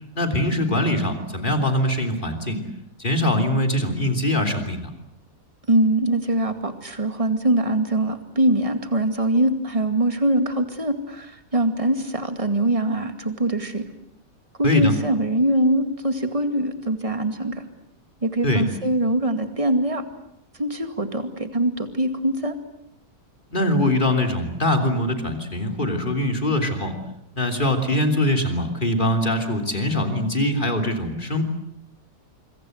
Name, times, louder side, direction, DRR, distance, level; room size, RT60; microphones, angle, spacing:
voice 1, 0.1-2.6 3.0-4.9 14.6-14.9 18.4-18.6 23.5-26.9 27.3-31.4, left 1 dB, 30° left, 5 dB, 3.4 m, -22 dB
voice 2, 5.7-13.8 14.6-17.7 18.2-20.0 20.6-22.6, right 1 dB, 20° right, 8 dB, 2.3 m, -23 dB
26.5 x 24.0 x 7.9 m, 0.77 s
omnidirectional pair, 1.6 m